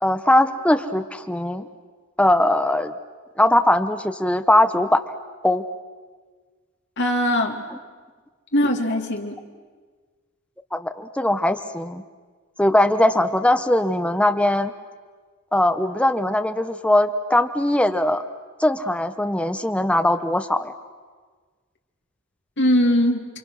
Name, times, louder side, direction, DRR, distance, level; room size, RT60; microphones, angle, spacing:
voice 1, 0.0-1.7 2.2-2.9 3.4-5.0 5.4-5.6 10.7-12.0 12.6-14.7 15.5-18.2 18.6-20.7, left 1 dB, 5° left, 9 dB, 0.8 m, -20 dB
voice 2, 7.0-7.6 8.5-9.4 22.6-23.3, left 1 dB, 55° left, 2 dB, 2.4 m, -20 dB
29.0 x 25.0 x 6.3 m, 1.5 s
head